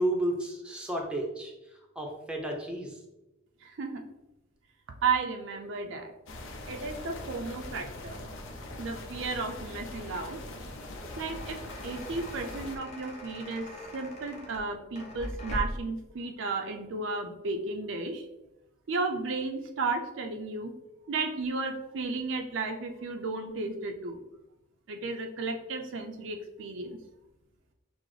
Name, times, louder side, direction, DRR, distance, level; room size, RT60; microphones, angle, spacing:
voice 1, 0.0-1.5 2.0-3.0, right 1 dB, 5° right, 0 dB, 0.6 m, -31 dB
voice 2, 3.6-4.0 5.0-6.1 6.7-8.2 8.8-10.4 11.2-11.6 11.8-13.7 13.9-18.3 18.9-20.7 21.1-24.2 24.9-27.0, right 3 dB, 65° right, 4 dB, 0.5 m, -33 dB
sound 1, 6.3-12.8, left 1 dB, 75° left, 0.6 m, -42 dB
sound 2, 10.7-16.0, left 1 dB, 35° left, 0.8 m, -40 dB
6.0 x 2.0 x 3.1 m, 0.95 s
head